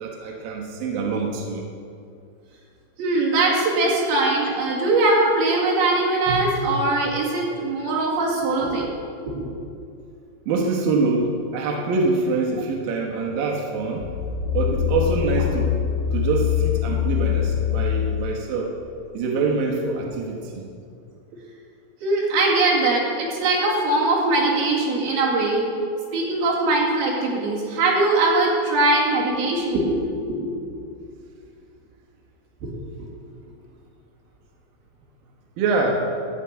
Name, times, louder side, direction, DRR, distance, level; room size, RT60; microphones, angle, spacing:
voice 1, 0.0-1.6 6.3-6.7 10.5-14.0 14.5-15.7 16.1-18.7 19.1-20.7 35.6-36.1, right 3 dB, 85° right, 0 dB, 2.0 m, -25 dB
voice 2, 3.0-8.9 9.3-9.5 22.0-25.7 26.1-30.0 30.4-30.6 32.6-32.7, right 2 dB, 55° right, -5 dB, 3.6 m, -21 dB
sound 1, 14.0-18.4 18.9-19.0, left 10 dB, 85° left, 3.3 m, -23 dB
13.0 x 5.1 x 8.6 m, 2.5 s
omnidirectional pair, 6.0 m